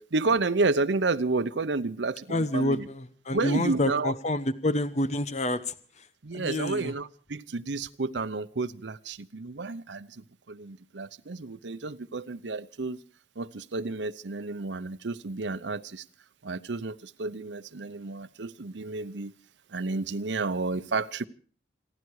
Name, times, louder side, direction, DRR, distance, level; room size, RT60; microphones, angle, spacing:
voice 1, 0.0-2.9 3.3-4.1 6.2-13.0 13.4-16.0 16.4-19.3 19.7-21.3, right 3 dB, 90° right, 13 dB, 0.8 m, -31 dB
voice 2, 2.3-6.1 6.3-6.9, left 1 dB, 40° left, 12 dB, 0.9 m, -28 dB
28.5 x 10.5 x 4.8 m, 0.43 s
head